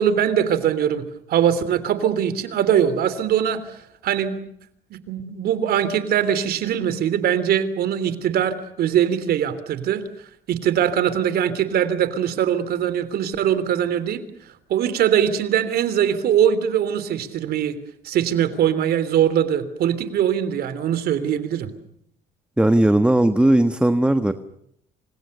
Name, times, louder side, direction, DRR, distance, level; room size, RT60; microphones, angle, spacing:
voice 1, 0.0-3.8 4.0-4.5 4.9-10.0 10.5-14.2 14.7-17.8 18.0-21.7, right 9 dB, 65° right, 14 dB, 3.3 m, -21 dB
voice 2, 22.6-24.3, right 1 dB, 5° right, 9 dB, 1.4 m, -17 dB
28.5 x 26.5 x 6.7 m, 0.72 s
cardioid pair, 110°, 17 cm